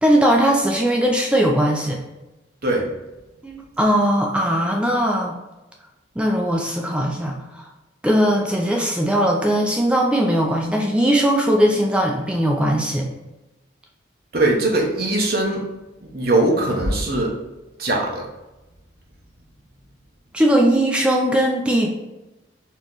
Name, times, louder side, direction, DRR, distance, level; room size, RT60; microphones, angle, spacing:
voice 1, 0.0-2.0 3.4-5.3 6.2-7.7 8.0-13.1 20.3-21.9, equal, 5° right, 0 dB, 0.4 m, -19 dB
voice 2, 14.3-15.6 16.0-17.3 17.8-18.3, right 2 dB, 50° right, -1 dB, 1.0 m, -20 dB
4.4 x 3.0 x 3.9 m, 1.0 s
head